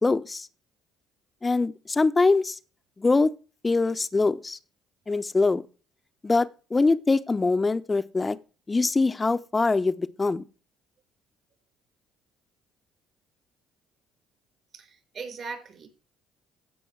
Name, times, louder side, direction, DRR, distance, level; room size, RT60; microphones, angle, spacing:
voice 1, 0.0-0.5 1.4-2.5 3.0-3.3 3.6-4.6 5.1-5.6 6.2-8.4 8.7-10.4, left 3 dB, 25° left, 0.8 m, -23 dB
voice 2, 14.7-15.9, right 4 dB, 50° right, 4.8 m, -39 dB
15.5 x 5.4 x 4.7 m
hypercardioid pair, 60°, 0 cm